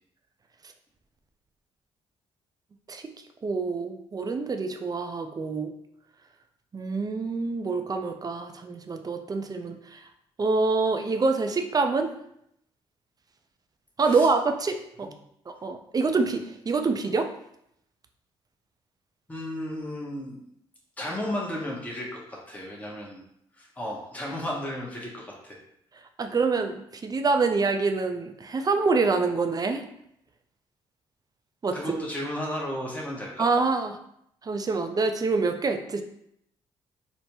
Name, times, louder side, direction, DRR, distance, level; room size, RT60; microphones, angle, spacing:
voice 1, 3.4-5.7 6.7-10.0 10.4-12.1 14.0-15.1 15.5-17.3 26.2-29.8 31.6-32.0 33.4-34.0 34.4-36.0, right 4 dB, 30° right, 5 dB, 0.4 m, -26 dB
voice 2, 19.3-20.4 21.0-23.2 23.6-25.6 31.7-33.5, left 1 dB, 10° left, -3 dB, 0.8 m, -34 dB
3.2 x 2.0 x 2.9 m, 0.74 s
hypercardioid pair, 50°, 13 cm